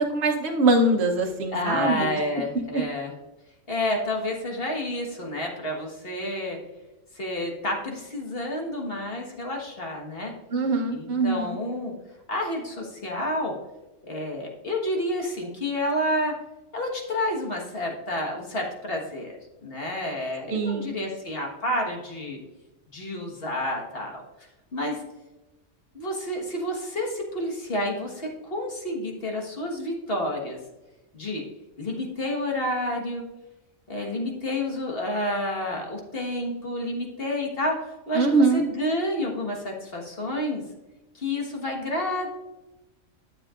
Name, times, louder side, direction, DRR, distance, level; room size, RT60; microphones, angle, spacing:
voice 1, 0.0-2.1 2.7-2.8 10.5-11.6 20.5-20.9 38.1-38.6, right 2 dB, 60° right, 1 dB, 1.2 m, -23 dB
voice 2, 1.5-3.1 3.7-6.6 7.1-10.3 10.9-11.9 12.3-13.5 14.1-16.3 16.7-19.3 19.6-22.4 22.9-24.2 24.7-25.0 25.9-30.6 31.1-31.4 31.8-33.2 33.9-40.6 41.1-42.3, left 1 dB, 50° left, 0 dB, 1.6 m, -29 dB
12.0 x 7.5 x 2.4 m, 1.1 s
omnidirectional pair, 1.3 m